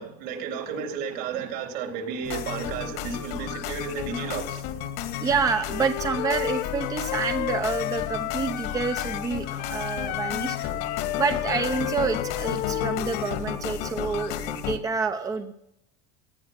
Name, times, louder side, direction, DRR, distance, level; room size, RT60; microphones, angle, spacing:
voice 1, 0.0-4.6, right 6 dB, 65° right, 4 dB, 4.0 m, -33 dB
sound 1, 2.2-14.8, left 9 dB, 70° left, 2.2 m, -33 dB
voice 2, 5.2-10.7 11.2-15.5, right 5 dB, 15° right, 7 dB, 0.8 m, -28 dB
Wind instrument woodwind instrument, 5.7-9.3 9.6-13.5, left 17 dB, 40° left, 0.4 m, -32 dB
18.0 x 11.0 x 6.0 m, 0.80 s
cardioid pair, 150°, 20 cm